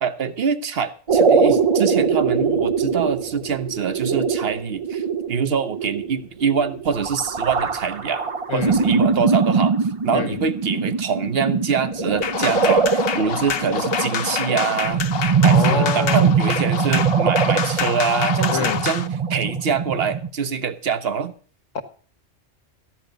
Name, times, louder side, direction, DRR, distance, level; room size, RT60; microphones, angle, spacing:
voice 1, 0.0-9.8 10.0-15.1 15.4-21.3, right 6 dB, 55° right, 1.2 m, -25 dB
sound 1, 1.1-20.3, right 5 dB, 40° right, 0.5 m, -22 dB
sound 2, 12.2-19.1, left 7 dB, 55° left, 1.0 m, -27 dB
voice 2, 15.5-16.3 18.5-18.8 21.7-21.8, left 6 dB, 85° left, 1.5 m, -25 dB
14.5 x 10.0 x 5.2 m
omnidirectional pair, 1.3 m